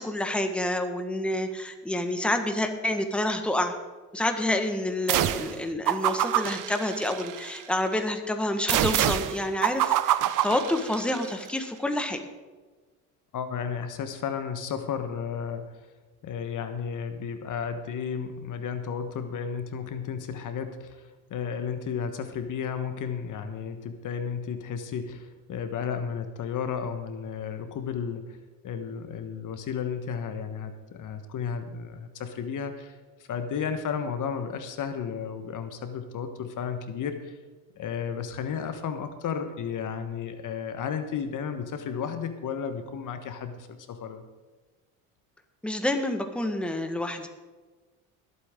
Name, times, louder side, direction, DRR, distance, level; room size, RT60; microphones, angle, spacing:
voice 1, 0.0-3.7 4.1-12.2 45.6-47.3, left 1 dB, 5° left, 5 dB, 1.4 m, -28 dB
sound 1, 5.1-5.6 5.9-7.6 8.7-11.3, right 13 dB, 55° right, 0.8 m, -26 dB
voice 2, 13.3-15.8 16.2-28.4 28.6-33.0 33.3-37.4 37.8-44.2, left 7 dB, 50° left, 8 dB, 1.3 m, -33 dB
21.0 x 8.6 x 3.7 m, 1.3 s
supercardioid pair, 85°, 39 cm